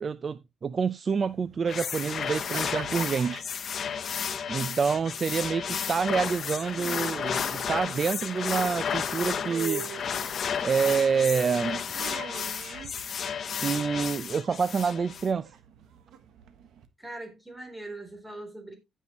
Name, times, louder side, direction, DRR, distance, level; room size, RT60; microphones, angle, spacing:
voice 1, 0.0-3.4 4.5-9.9 10.6-11.8 13.6-15.5, right 5 dB, 40° right, 0.5 m, -27 dB
sound 1, 1.2-16.9, right 8 dB, 75° right, 1.5 m, -45 dB
sound 2, 1.7-15.3, left 7 dB, 55° left, 0.9 m, -32 dB
voice 2, 3.8-4.4 17.0-18.8, right 2 dB, 5° right, 3.8 m, -42 dB
16.0 x 5.6 x 3.1 m
cardioid pair, 90°, 0 cm